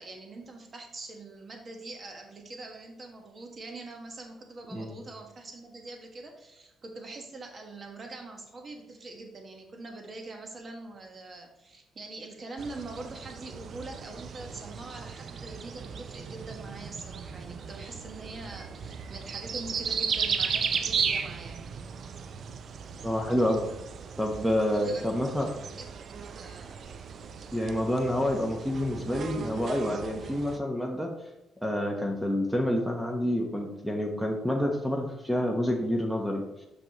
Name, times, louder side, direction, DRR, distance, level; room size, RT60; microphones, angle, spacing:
voice 1, 0.0-21.7 24.7-25.3 25.8-26.8, right 2 dB, 40° right, 3 dB, 1.3 m, -43 dB
sound 1, 12.6-30.6, right 6 dB, 55° right, 0.4 m, -36 dB
voice 2, 23.0-23.7 24.2-25.5 27.5-31.1 31.6-36.4, equal, 5° right, 2 dB, 0.9 m, -28 dB
6.4 x 6.0 x 3.0 m, 0.93 s
cardioid pair, 90°, 0 cm